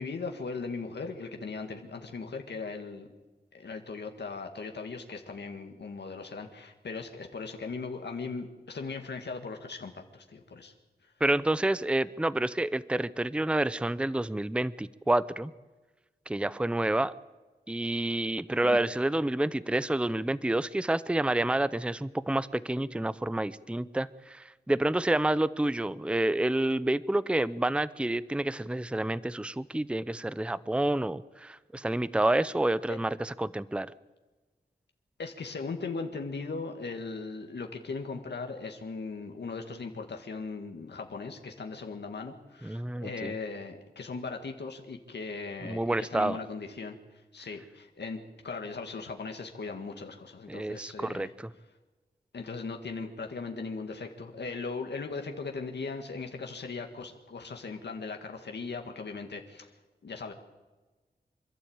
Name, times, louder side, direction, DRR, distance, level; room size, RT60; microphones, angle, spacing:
voice 1, 0.0-3.1 3.5-10.7 11.0-11.1 18.6-18.8 35.2-47.0 47.3-51.3 52.3-59.7 60.0-60.3, left 4 dB, 80° left, 4 dB, 1.8 m, -38 dB
voice 2, 11.2-15.5 16.3-17.1 17.7-33.9 42.6-43.3 45.6-46.4 50.5-51.5, right 1 dB, 5° right, 17 dB, 0.6 m, -29 dB
26.5 x 12.5 x 8.8 m, 1.2 s
wide cardioid pair, 75°, 17 cm